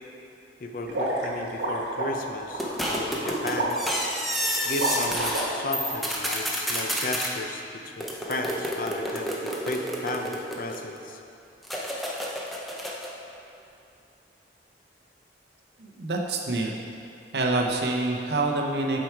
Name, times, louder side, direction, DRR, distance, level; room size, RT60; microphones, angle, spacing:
voice 1, 0.6-3.7 4.6-11.2, left 2 dB, 50° left, 3 dB, 0.6 m, -34 dB
sound 1, 0.9-5.9, right 1 dB, 85° right, 1.3 m, -30 dB
sound 2, 2.6-5.4 5.7-7.3 8.0-11.0 11.6-13.1, equal, ahead, 0.6 m, -30 dB
voice 2, 15.8-16.7 17.3-19.0, right 2 dB, 65° right, 0 dB, 0.8 m, -26 dB
7.8 x 4.7 x 4.6 m, 2.6 s
head